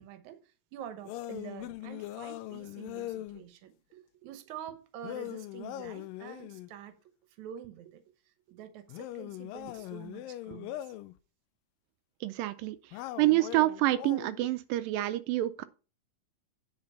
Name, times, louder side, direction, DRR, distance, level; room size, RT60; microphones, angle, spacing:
voice 1, 0.0-7.0 7.4-10.9, right 9 dB, 65° right, 2.2 m, -47 dB
sound 1, 1.1-3.4 5.0-6.7 8.9-11.1 12.9-14.5, left 15 dB, 85° left, 2.3 m, -41 dB
voice 2, 12.2-12.8 13.2-15.6, right 16 dB, 85° right, 2.3 m, -27 dB
8.8 x 5.3 x 5.5 m
omnidirectional pair, 3.9 m